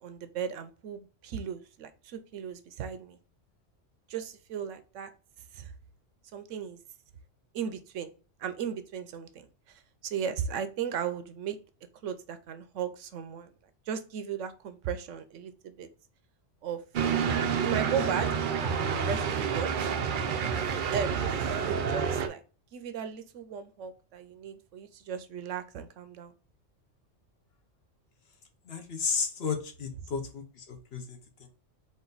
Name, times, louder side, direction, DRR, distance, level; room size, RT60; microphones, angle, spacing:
voice 1, 0.0-3.2 4.1-5.1 5.5-5.7 6.3-6.8 7.5-8.1 8.4-11.6 12.0-13.5 13.9-15.9 16.6-16.8 17.6-18.3 18.6-19.7 20.7-22.4 22.7-26.3, right 7 dB, 80° right, 10 dB, 1.0 m, -36 dB
sound 1, 16.9-22.3, right 6 dB, 55° right, 0.6 m, -29 dB
voice 2, 28.7-31.5, left 5 dB, 60° left, 5 dB, 1.0 m, -33 dB
4.2 x 2.6 x 3.8 m, 0.35 s
omnidirectional pair, 1.3 m